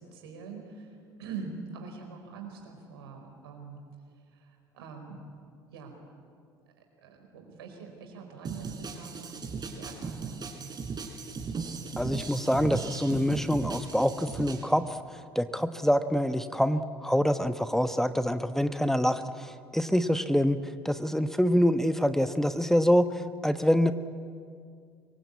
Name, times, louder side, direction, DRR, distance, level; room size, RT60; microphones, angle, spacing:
voice 1, 0.0-3.8 4.3-5.3 5.7-5.9 7.0-10.8, right 5 dB, 75° right, 3 dB, 4.8 m, -44 dB
sound 1, 8.4-14.6, right 5 dB, 35° right, 3.9 m, -37 dB
voice 2, 12.0-20.6 20.8-23.9, equal, 5° left, 10 dB, 1.1 m, -26 dB
25.5 x 22.5 x 8.5 m, 2.3 s
figure-of-eight pair, 60°, 13 cm